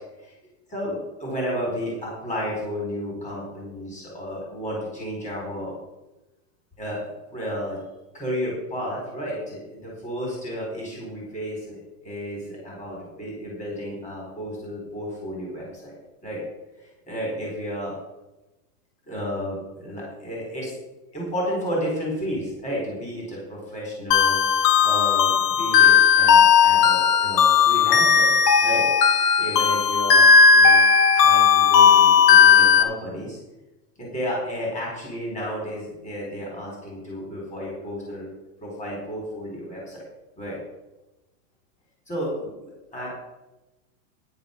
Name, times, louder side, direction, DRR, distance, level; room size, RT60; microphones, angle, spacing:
voice 1, 0.7-5.8 6.8-7.0 7.3-7.8 8.1-15.9 16.2-16.4 16.8-18.0 19.1-20.7 21.1-28.3 28.6-28.8 29.4-30.3 30.5-30.8 31.1-33.4 34.0-38.3 38.6-40.0 40.4-40.6 42.1-43.1, equal, 15° left, -3 dB, 4.6 m, -32 dB
sound 1, 24.1-32.8, left 6 dB, 75° left, 1.4 m, -16 dB
10.5 x 9.5 x 5.4 m, 1.0 s
supercardioid pair, 150°, 49 cm